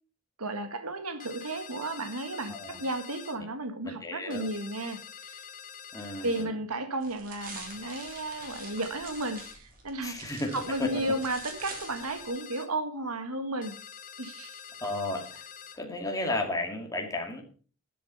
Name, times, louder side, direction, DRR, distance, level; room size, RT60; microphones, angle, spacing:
voice 1, 0.4-5.5 6.2-13.8 14.2-14.6, right 2 dB, 90° right, 8 dB, 1.9 m, -34 dB
sound 1, 1.2-3.4 4.3-6.5 7.4-9.6 10.5-12.7 13.6-15.8, left 8 dB, 40° left, 1.2 m, -46 dB
voice 2, 2.5-2.8 3.8-4.5 5.9-6.4 10.0-10.5 10.8-10.9 14.8-15.5 15.7-17.4, left 2 dB, 15° left, 2 dB, 2.3 m, -33 dB
sound 2, 7.0-12.3, right 4 dB, 40° right, 3.6 m, -47 dB
12.5 x 7.7 x 5.6 m, 0.40 s
head